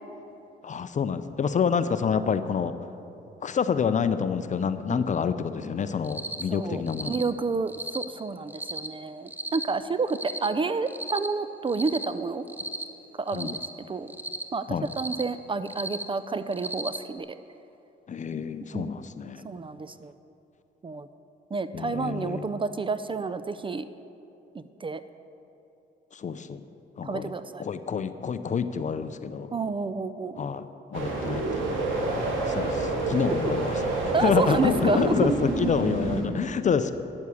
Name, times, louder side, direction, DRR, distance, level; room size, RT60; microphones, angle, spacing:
voice 1, 0.6-2.7 3.4-7.2 13.3-13.5 14.7-14.9 18.1-19.4 21.7-22.5 26.1-26.6 27.0-27.3 27.6-29.5 30.4-31.7 32.5-33.8 34.2-36.9, left 6 dB, 40° left, 12 dB, 0.6 m, -28 dB
Cricket, 6.0-6.4 6.9-7.2 7.7-8.0 8.5-8.9 9.3-9.6 10.1-10.5 10.9-11.3 11.7-12.1 12.5-12.8 13.3-13.7 14.1-14.4 14.8-15.2 15.6-16.0 16.5-17.0, right 1 dB, 10° right, 0.8 m, -35 dB
voice 2, 6.5-6.8 7.1-12.5 13.2-13.6 13.9-14.1 14.5-17.3 18.7-19.0 19.4-20.1 20.8-21.1 21.5-23.9 24.5-25.0 27.0-27.7 29.5-30.5 33.4-33.5 34.1-35.2, right 4 dB, 25° right, 12 dB, 0.4 m, -30 dB
sound 1, 30.9-36.2, right 2 dB, 75° right, 2.0 m, -28 dB
9.5 x 7.4 x 8.4 m, 2.9 s
cardioid pair, 90°, 20 cm